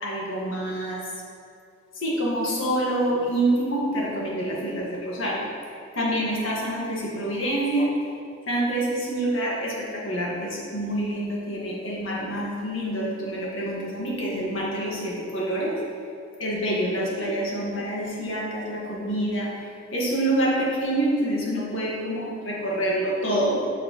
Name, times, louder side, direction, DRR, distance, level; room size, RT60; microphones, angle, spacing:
voice 1, 0.0-1.0 1.9-5.4 5.9-7.9 8.5-15.7 16.4-19.5 19.9-23.7, right 1 dB, 80° left, -4 dB, 1.5 m, -26 dB
6.9 x 6.0 x 3.0 m, 2.5 s
head